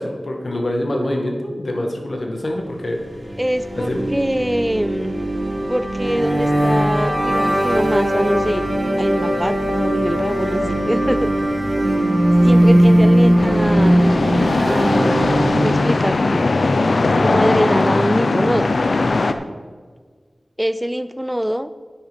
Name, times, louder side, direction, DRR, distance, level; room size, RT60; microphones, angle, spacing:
voice 1, 0.0-3.0 3.8-4.0, left 1 dB, 65° left, 2 dB, 1.8 m, -25 dB
sound 1, 3.0-16.0, right 1 dB, 30° right, 1.7 m, -18 dB
voice 2, 3.4-5.2 5.7-8.7 9.0-10.6 10.9-11.5 12.4-14.1 14.6-16.5 17.2-18.7 20.6-21.7, equal, 10° right, 12 dB, 0.4 m, -23 dB
sound 2, 13.4-19.3, left 3 dB, 80° left, 0.6 m, -19 dB
9.5 x 8.0 x 5.2 m, 1.5 s
cardioid pair, 40°, 0 cm